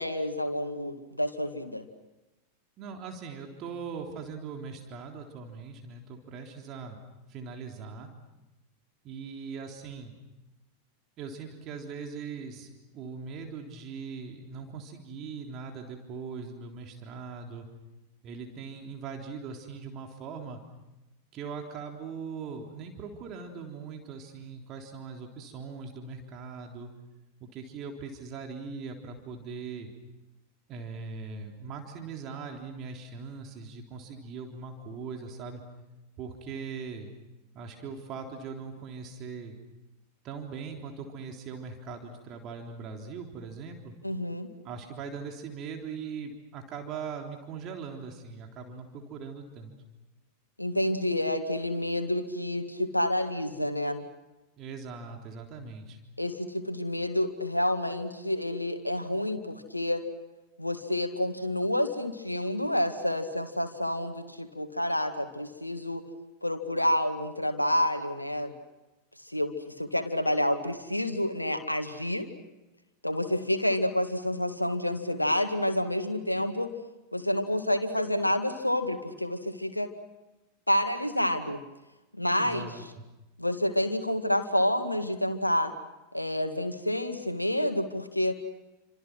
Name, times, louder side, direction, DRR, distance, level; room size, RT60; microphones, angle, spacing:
voice 1, 0.0-1.8 44.0-44.5 50.6-54.1 56.2-60.0 60.6-66.0 66.4-68.5 69.3-72.3 73.0-76.8 77.1-79.9 80.7-81.6 82.1-82.7 83.4-85.7 86.1-88.3, left 1 dB, 85° left, 7 dB, 2.0 m, -29 dB
voice 2, 2.8-7.0 7.3-8.1 9.0-10.1 11.2-17.7 18.2-20.6 21.3-26.9 27.4-29.9 30.7-35.6 36.2-37.1 37.5-39.6 40.2-43.9 44.6-49.7 54.6-56.0 82.3-83.0, right 5 dB, 35° right, 2 dB, 3.6 m, -40 dB
29.5 x 26.5 x 6.2 m, 1.0 s
figure-of-eight pair, 90°, 0 cm